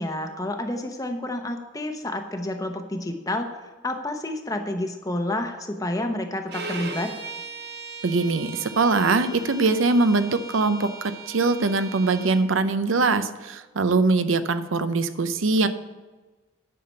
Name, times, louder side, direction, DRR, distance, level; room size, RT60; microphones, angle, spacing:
voice 1, 0.0-7.1, left 1 dB, 15° left, 5 dB, 0.8 m, -29 dB
Bowed string instrument, 6.5-12.5, right 4 dB, 50° right, 1.1 m, -38 dB
voice 2, 8.0-15.7, right 3 dB, 75° right, 11 dB, 0.6 m, -22 dB
10.0 x 5.8 x 6.6 m, 1.2 s
head